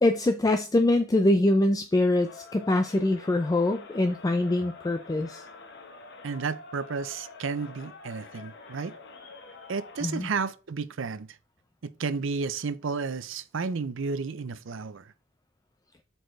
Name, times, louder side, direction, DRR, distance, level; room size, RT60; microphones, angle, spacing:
voice 1, 0.0-5.4 10.0-10.3, left 1 dB, 20° left, 0.4 m, -24 dB
Crowd, 2.2-10.3, left 4 dB, 55° left, 1.2 m, -47 dB
voice 2, 6.2-8.9 9.7-11.3 12.0-15.1, right 4 dB, 65° right, 0.6 m, -32 dB
7.9 x 4.4 x 3.2 m
head